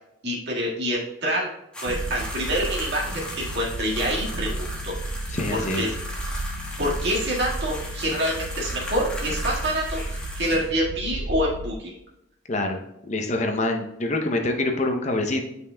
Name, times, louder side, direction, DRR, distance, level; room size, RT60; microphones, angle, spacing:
voice 1, 0.2-1.5 1.8-4.9 5.5-5.9 6.8-12.0, equal, 55° right, -4 dB, 1.8 m, -27 dB
sound 1, 1.7-10.7, left 1 dB, 5° left, 1.1 m, -37 dB
sound 2, 1.8-11.7, right 1 dB, 75° right, 0.5 m, -33 dB
voice 2, 5.3-5.9 12.5-12.8 13.0-15.5, left 2 dB, 35° left, 4 dB, 0.7 m, -25 dB
9.1 x 5.4 x 2.3 m, 0.82 s
head